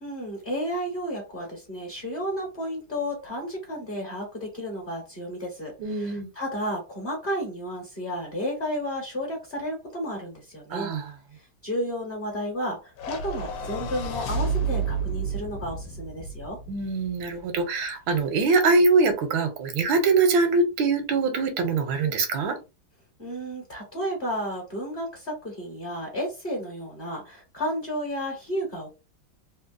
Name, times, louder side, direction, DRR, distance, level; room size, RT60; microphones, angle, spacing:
voice 1, 0.0-10.9 11.3-16.6 23.2-28.9, equal, 35° left, -1 dB, 1.1 m, -32 dB
voice 2, 5.8-6.3 10.7-11.1 16.7-22.6, right 3 dB, 85° right, 8 dB, 1.5 m, -23 dB
sound 1, 13.0-17.4, right 4 dB, 90° left, 1.4 m, -31 dB
3.5 x 2.7 x 2.5 m, 0.28 s
omnidirectional pair, 2.1 m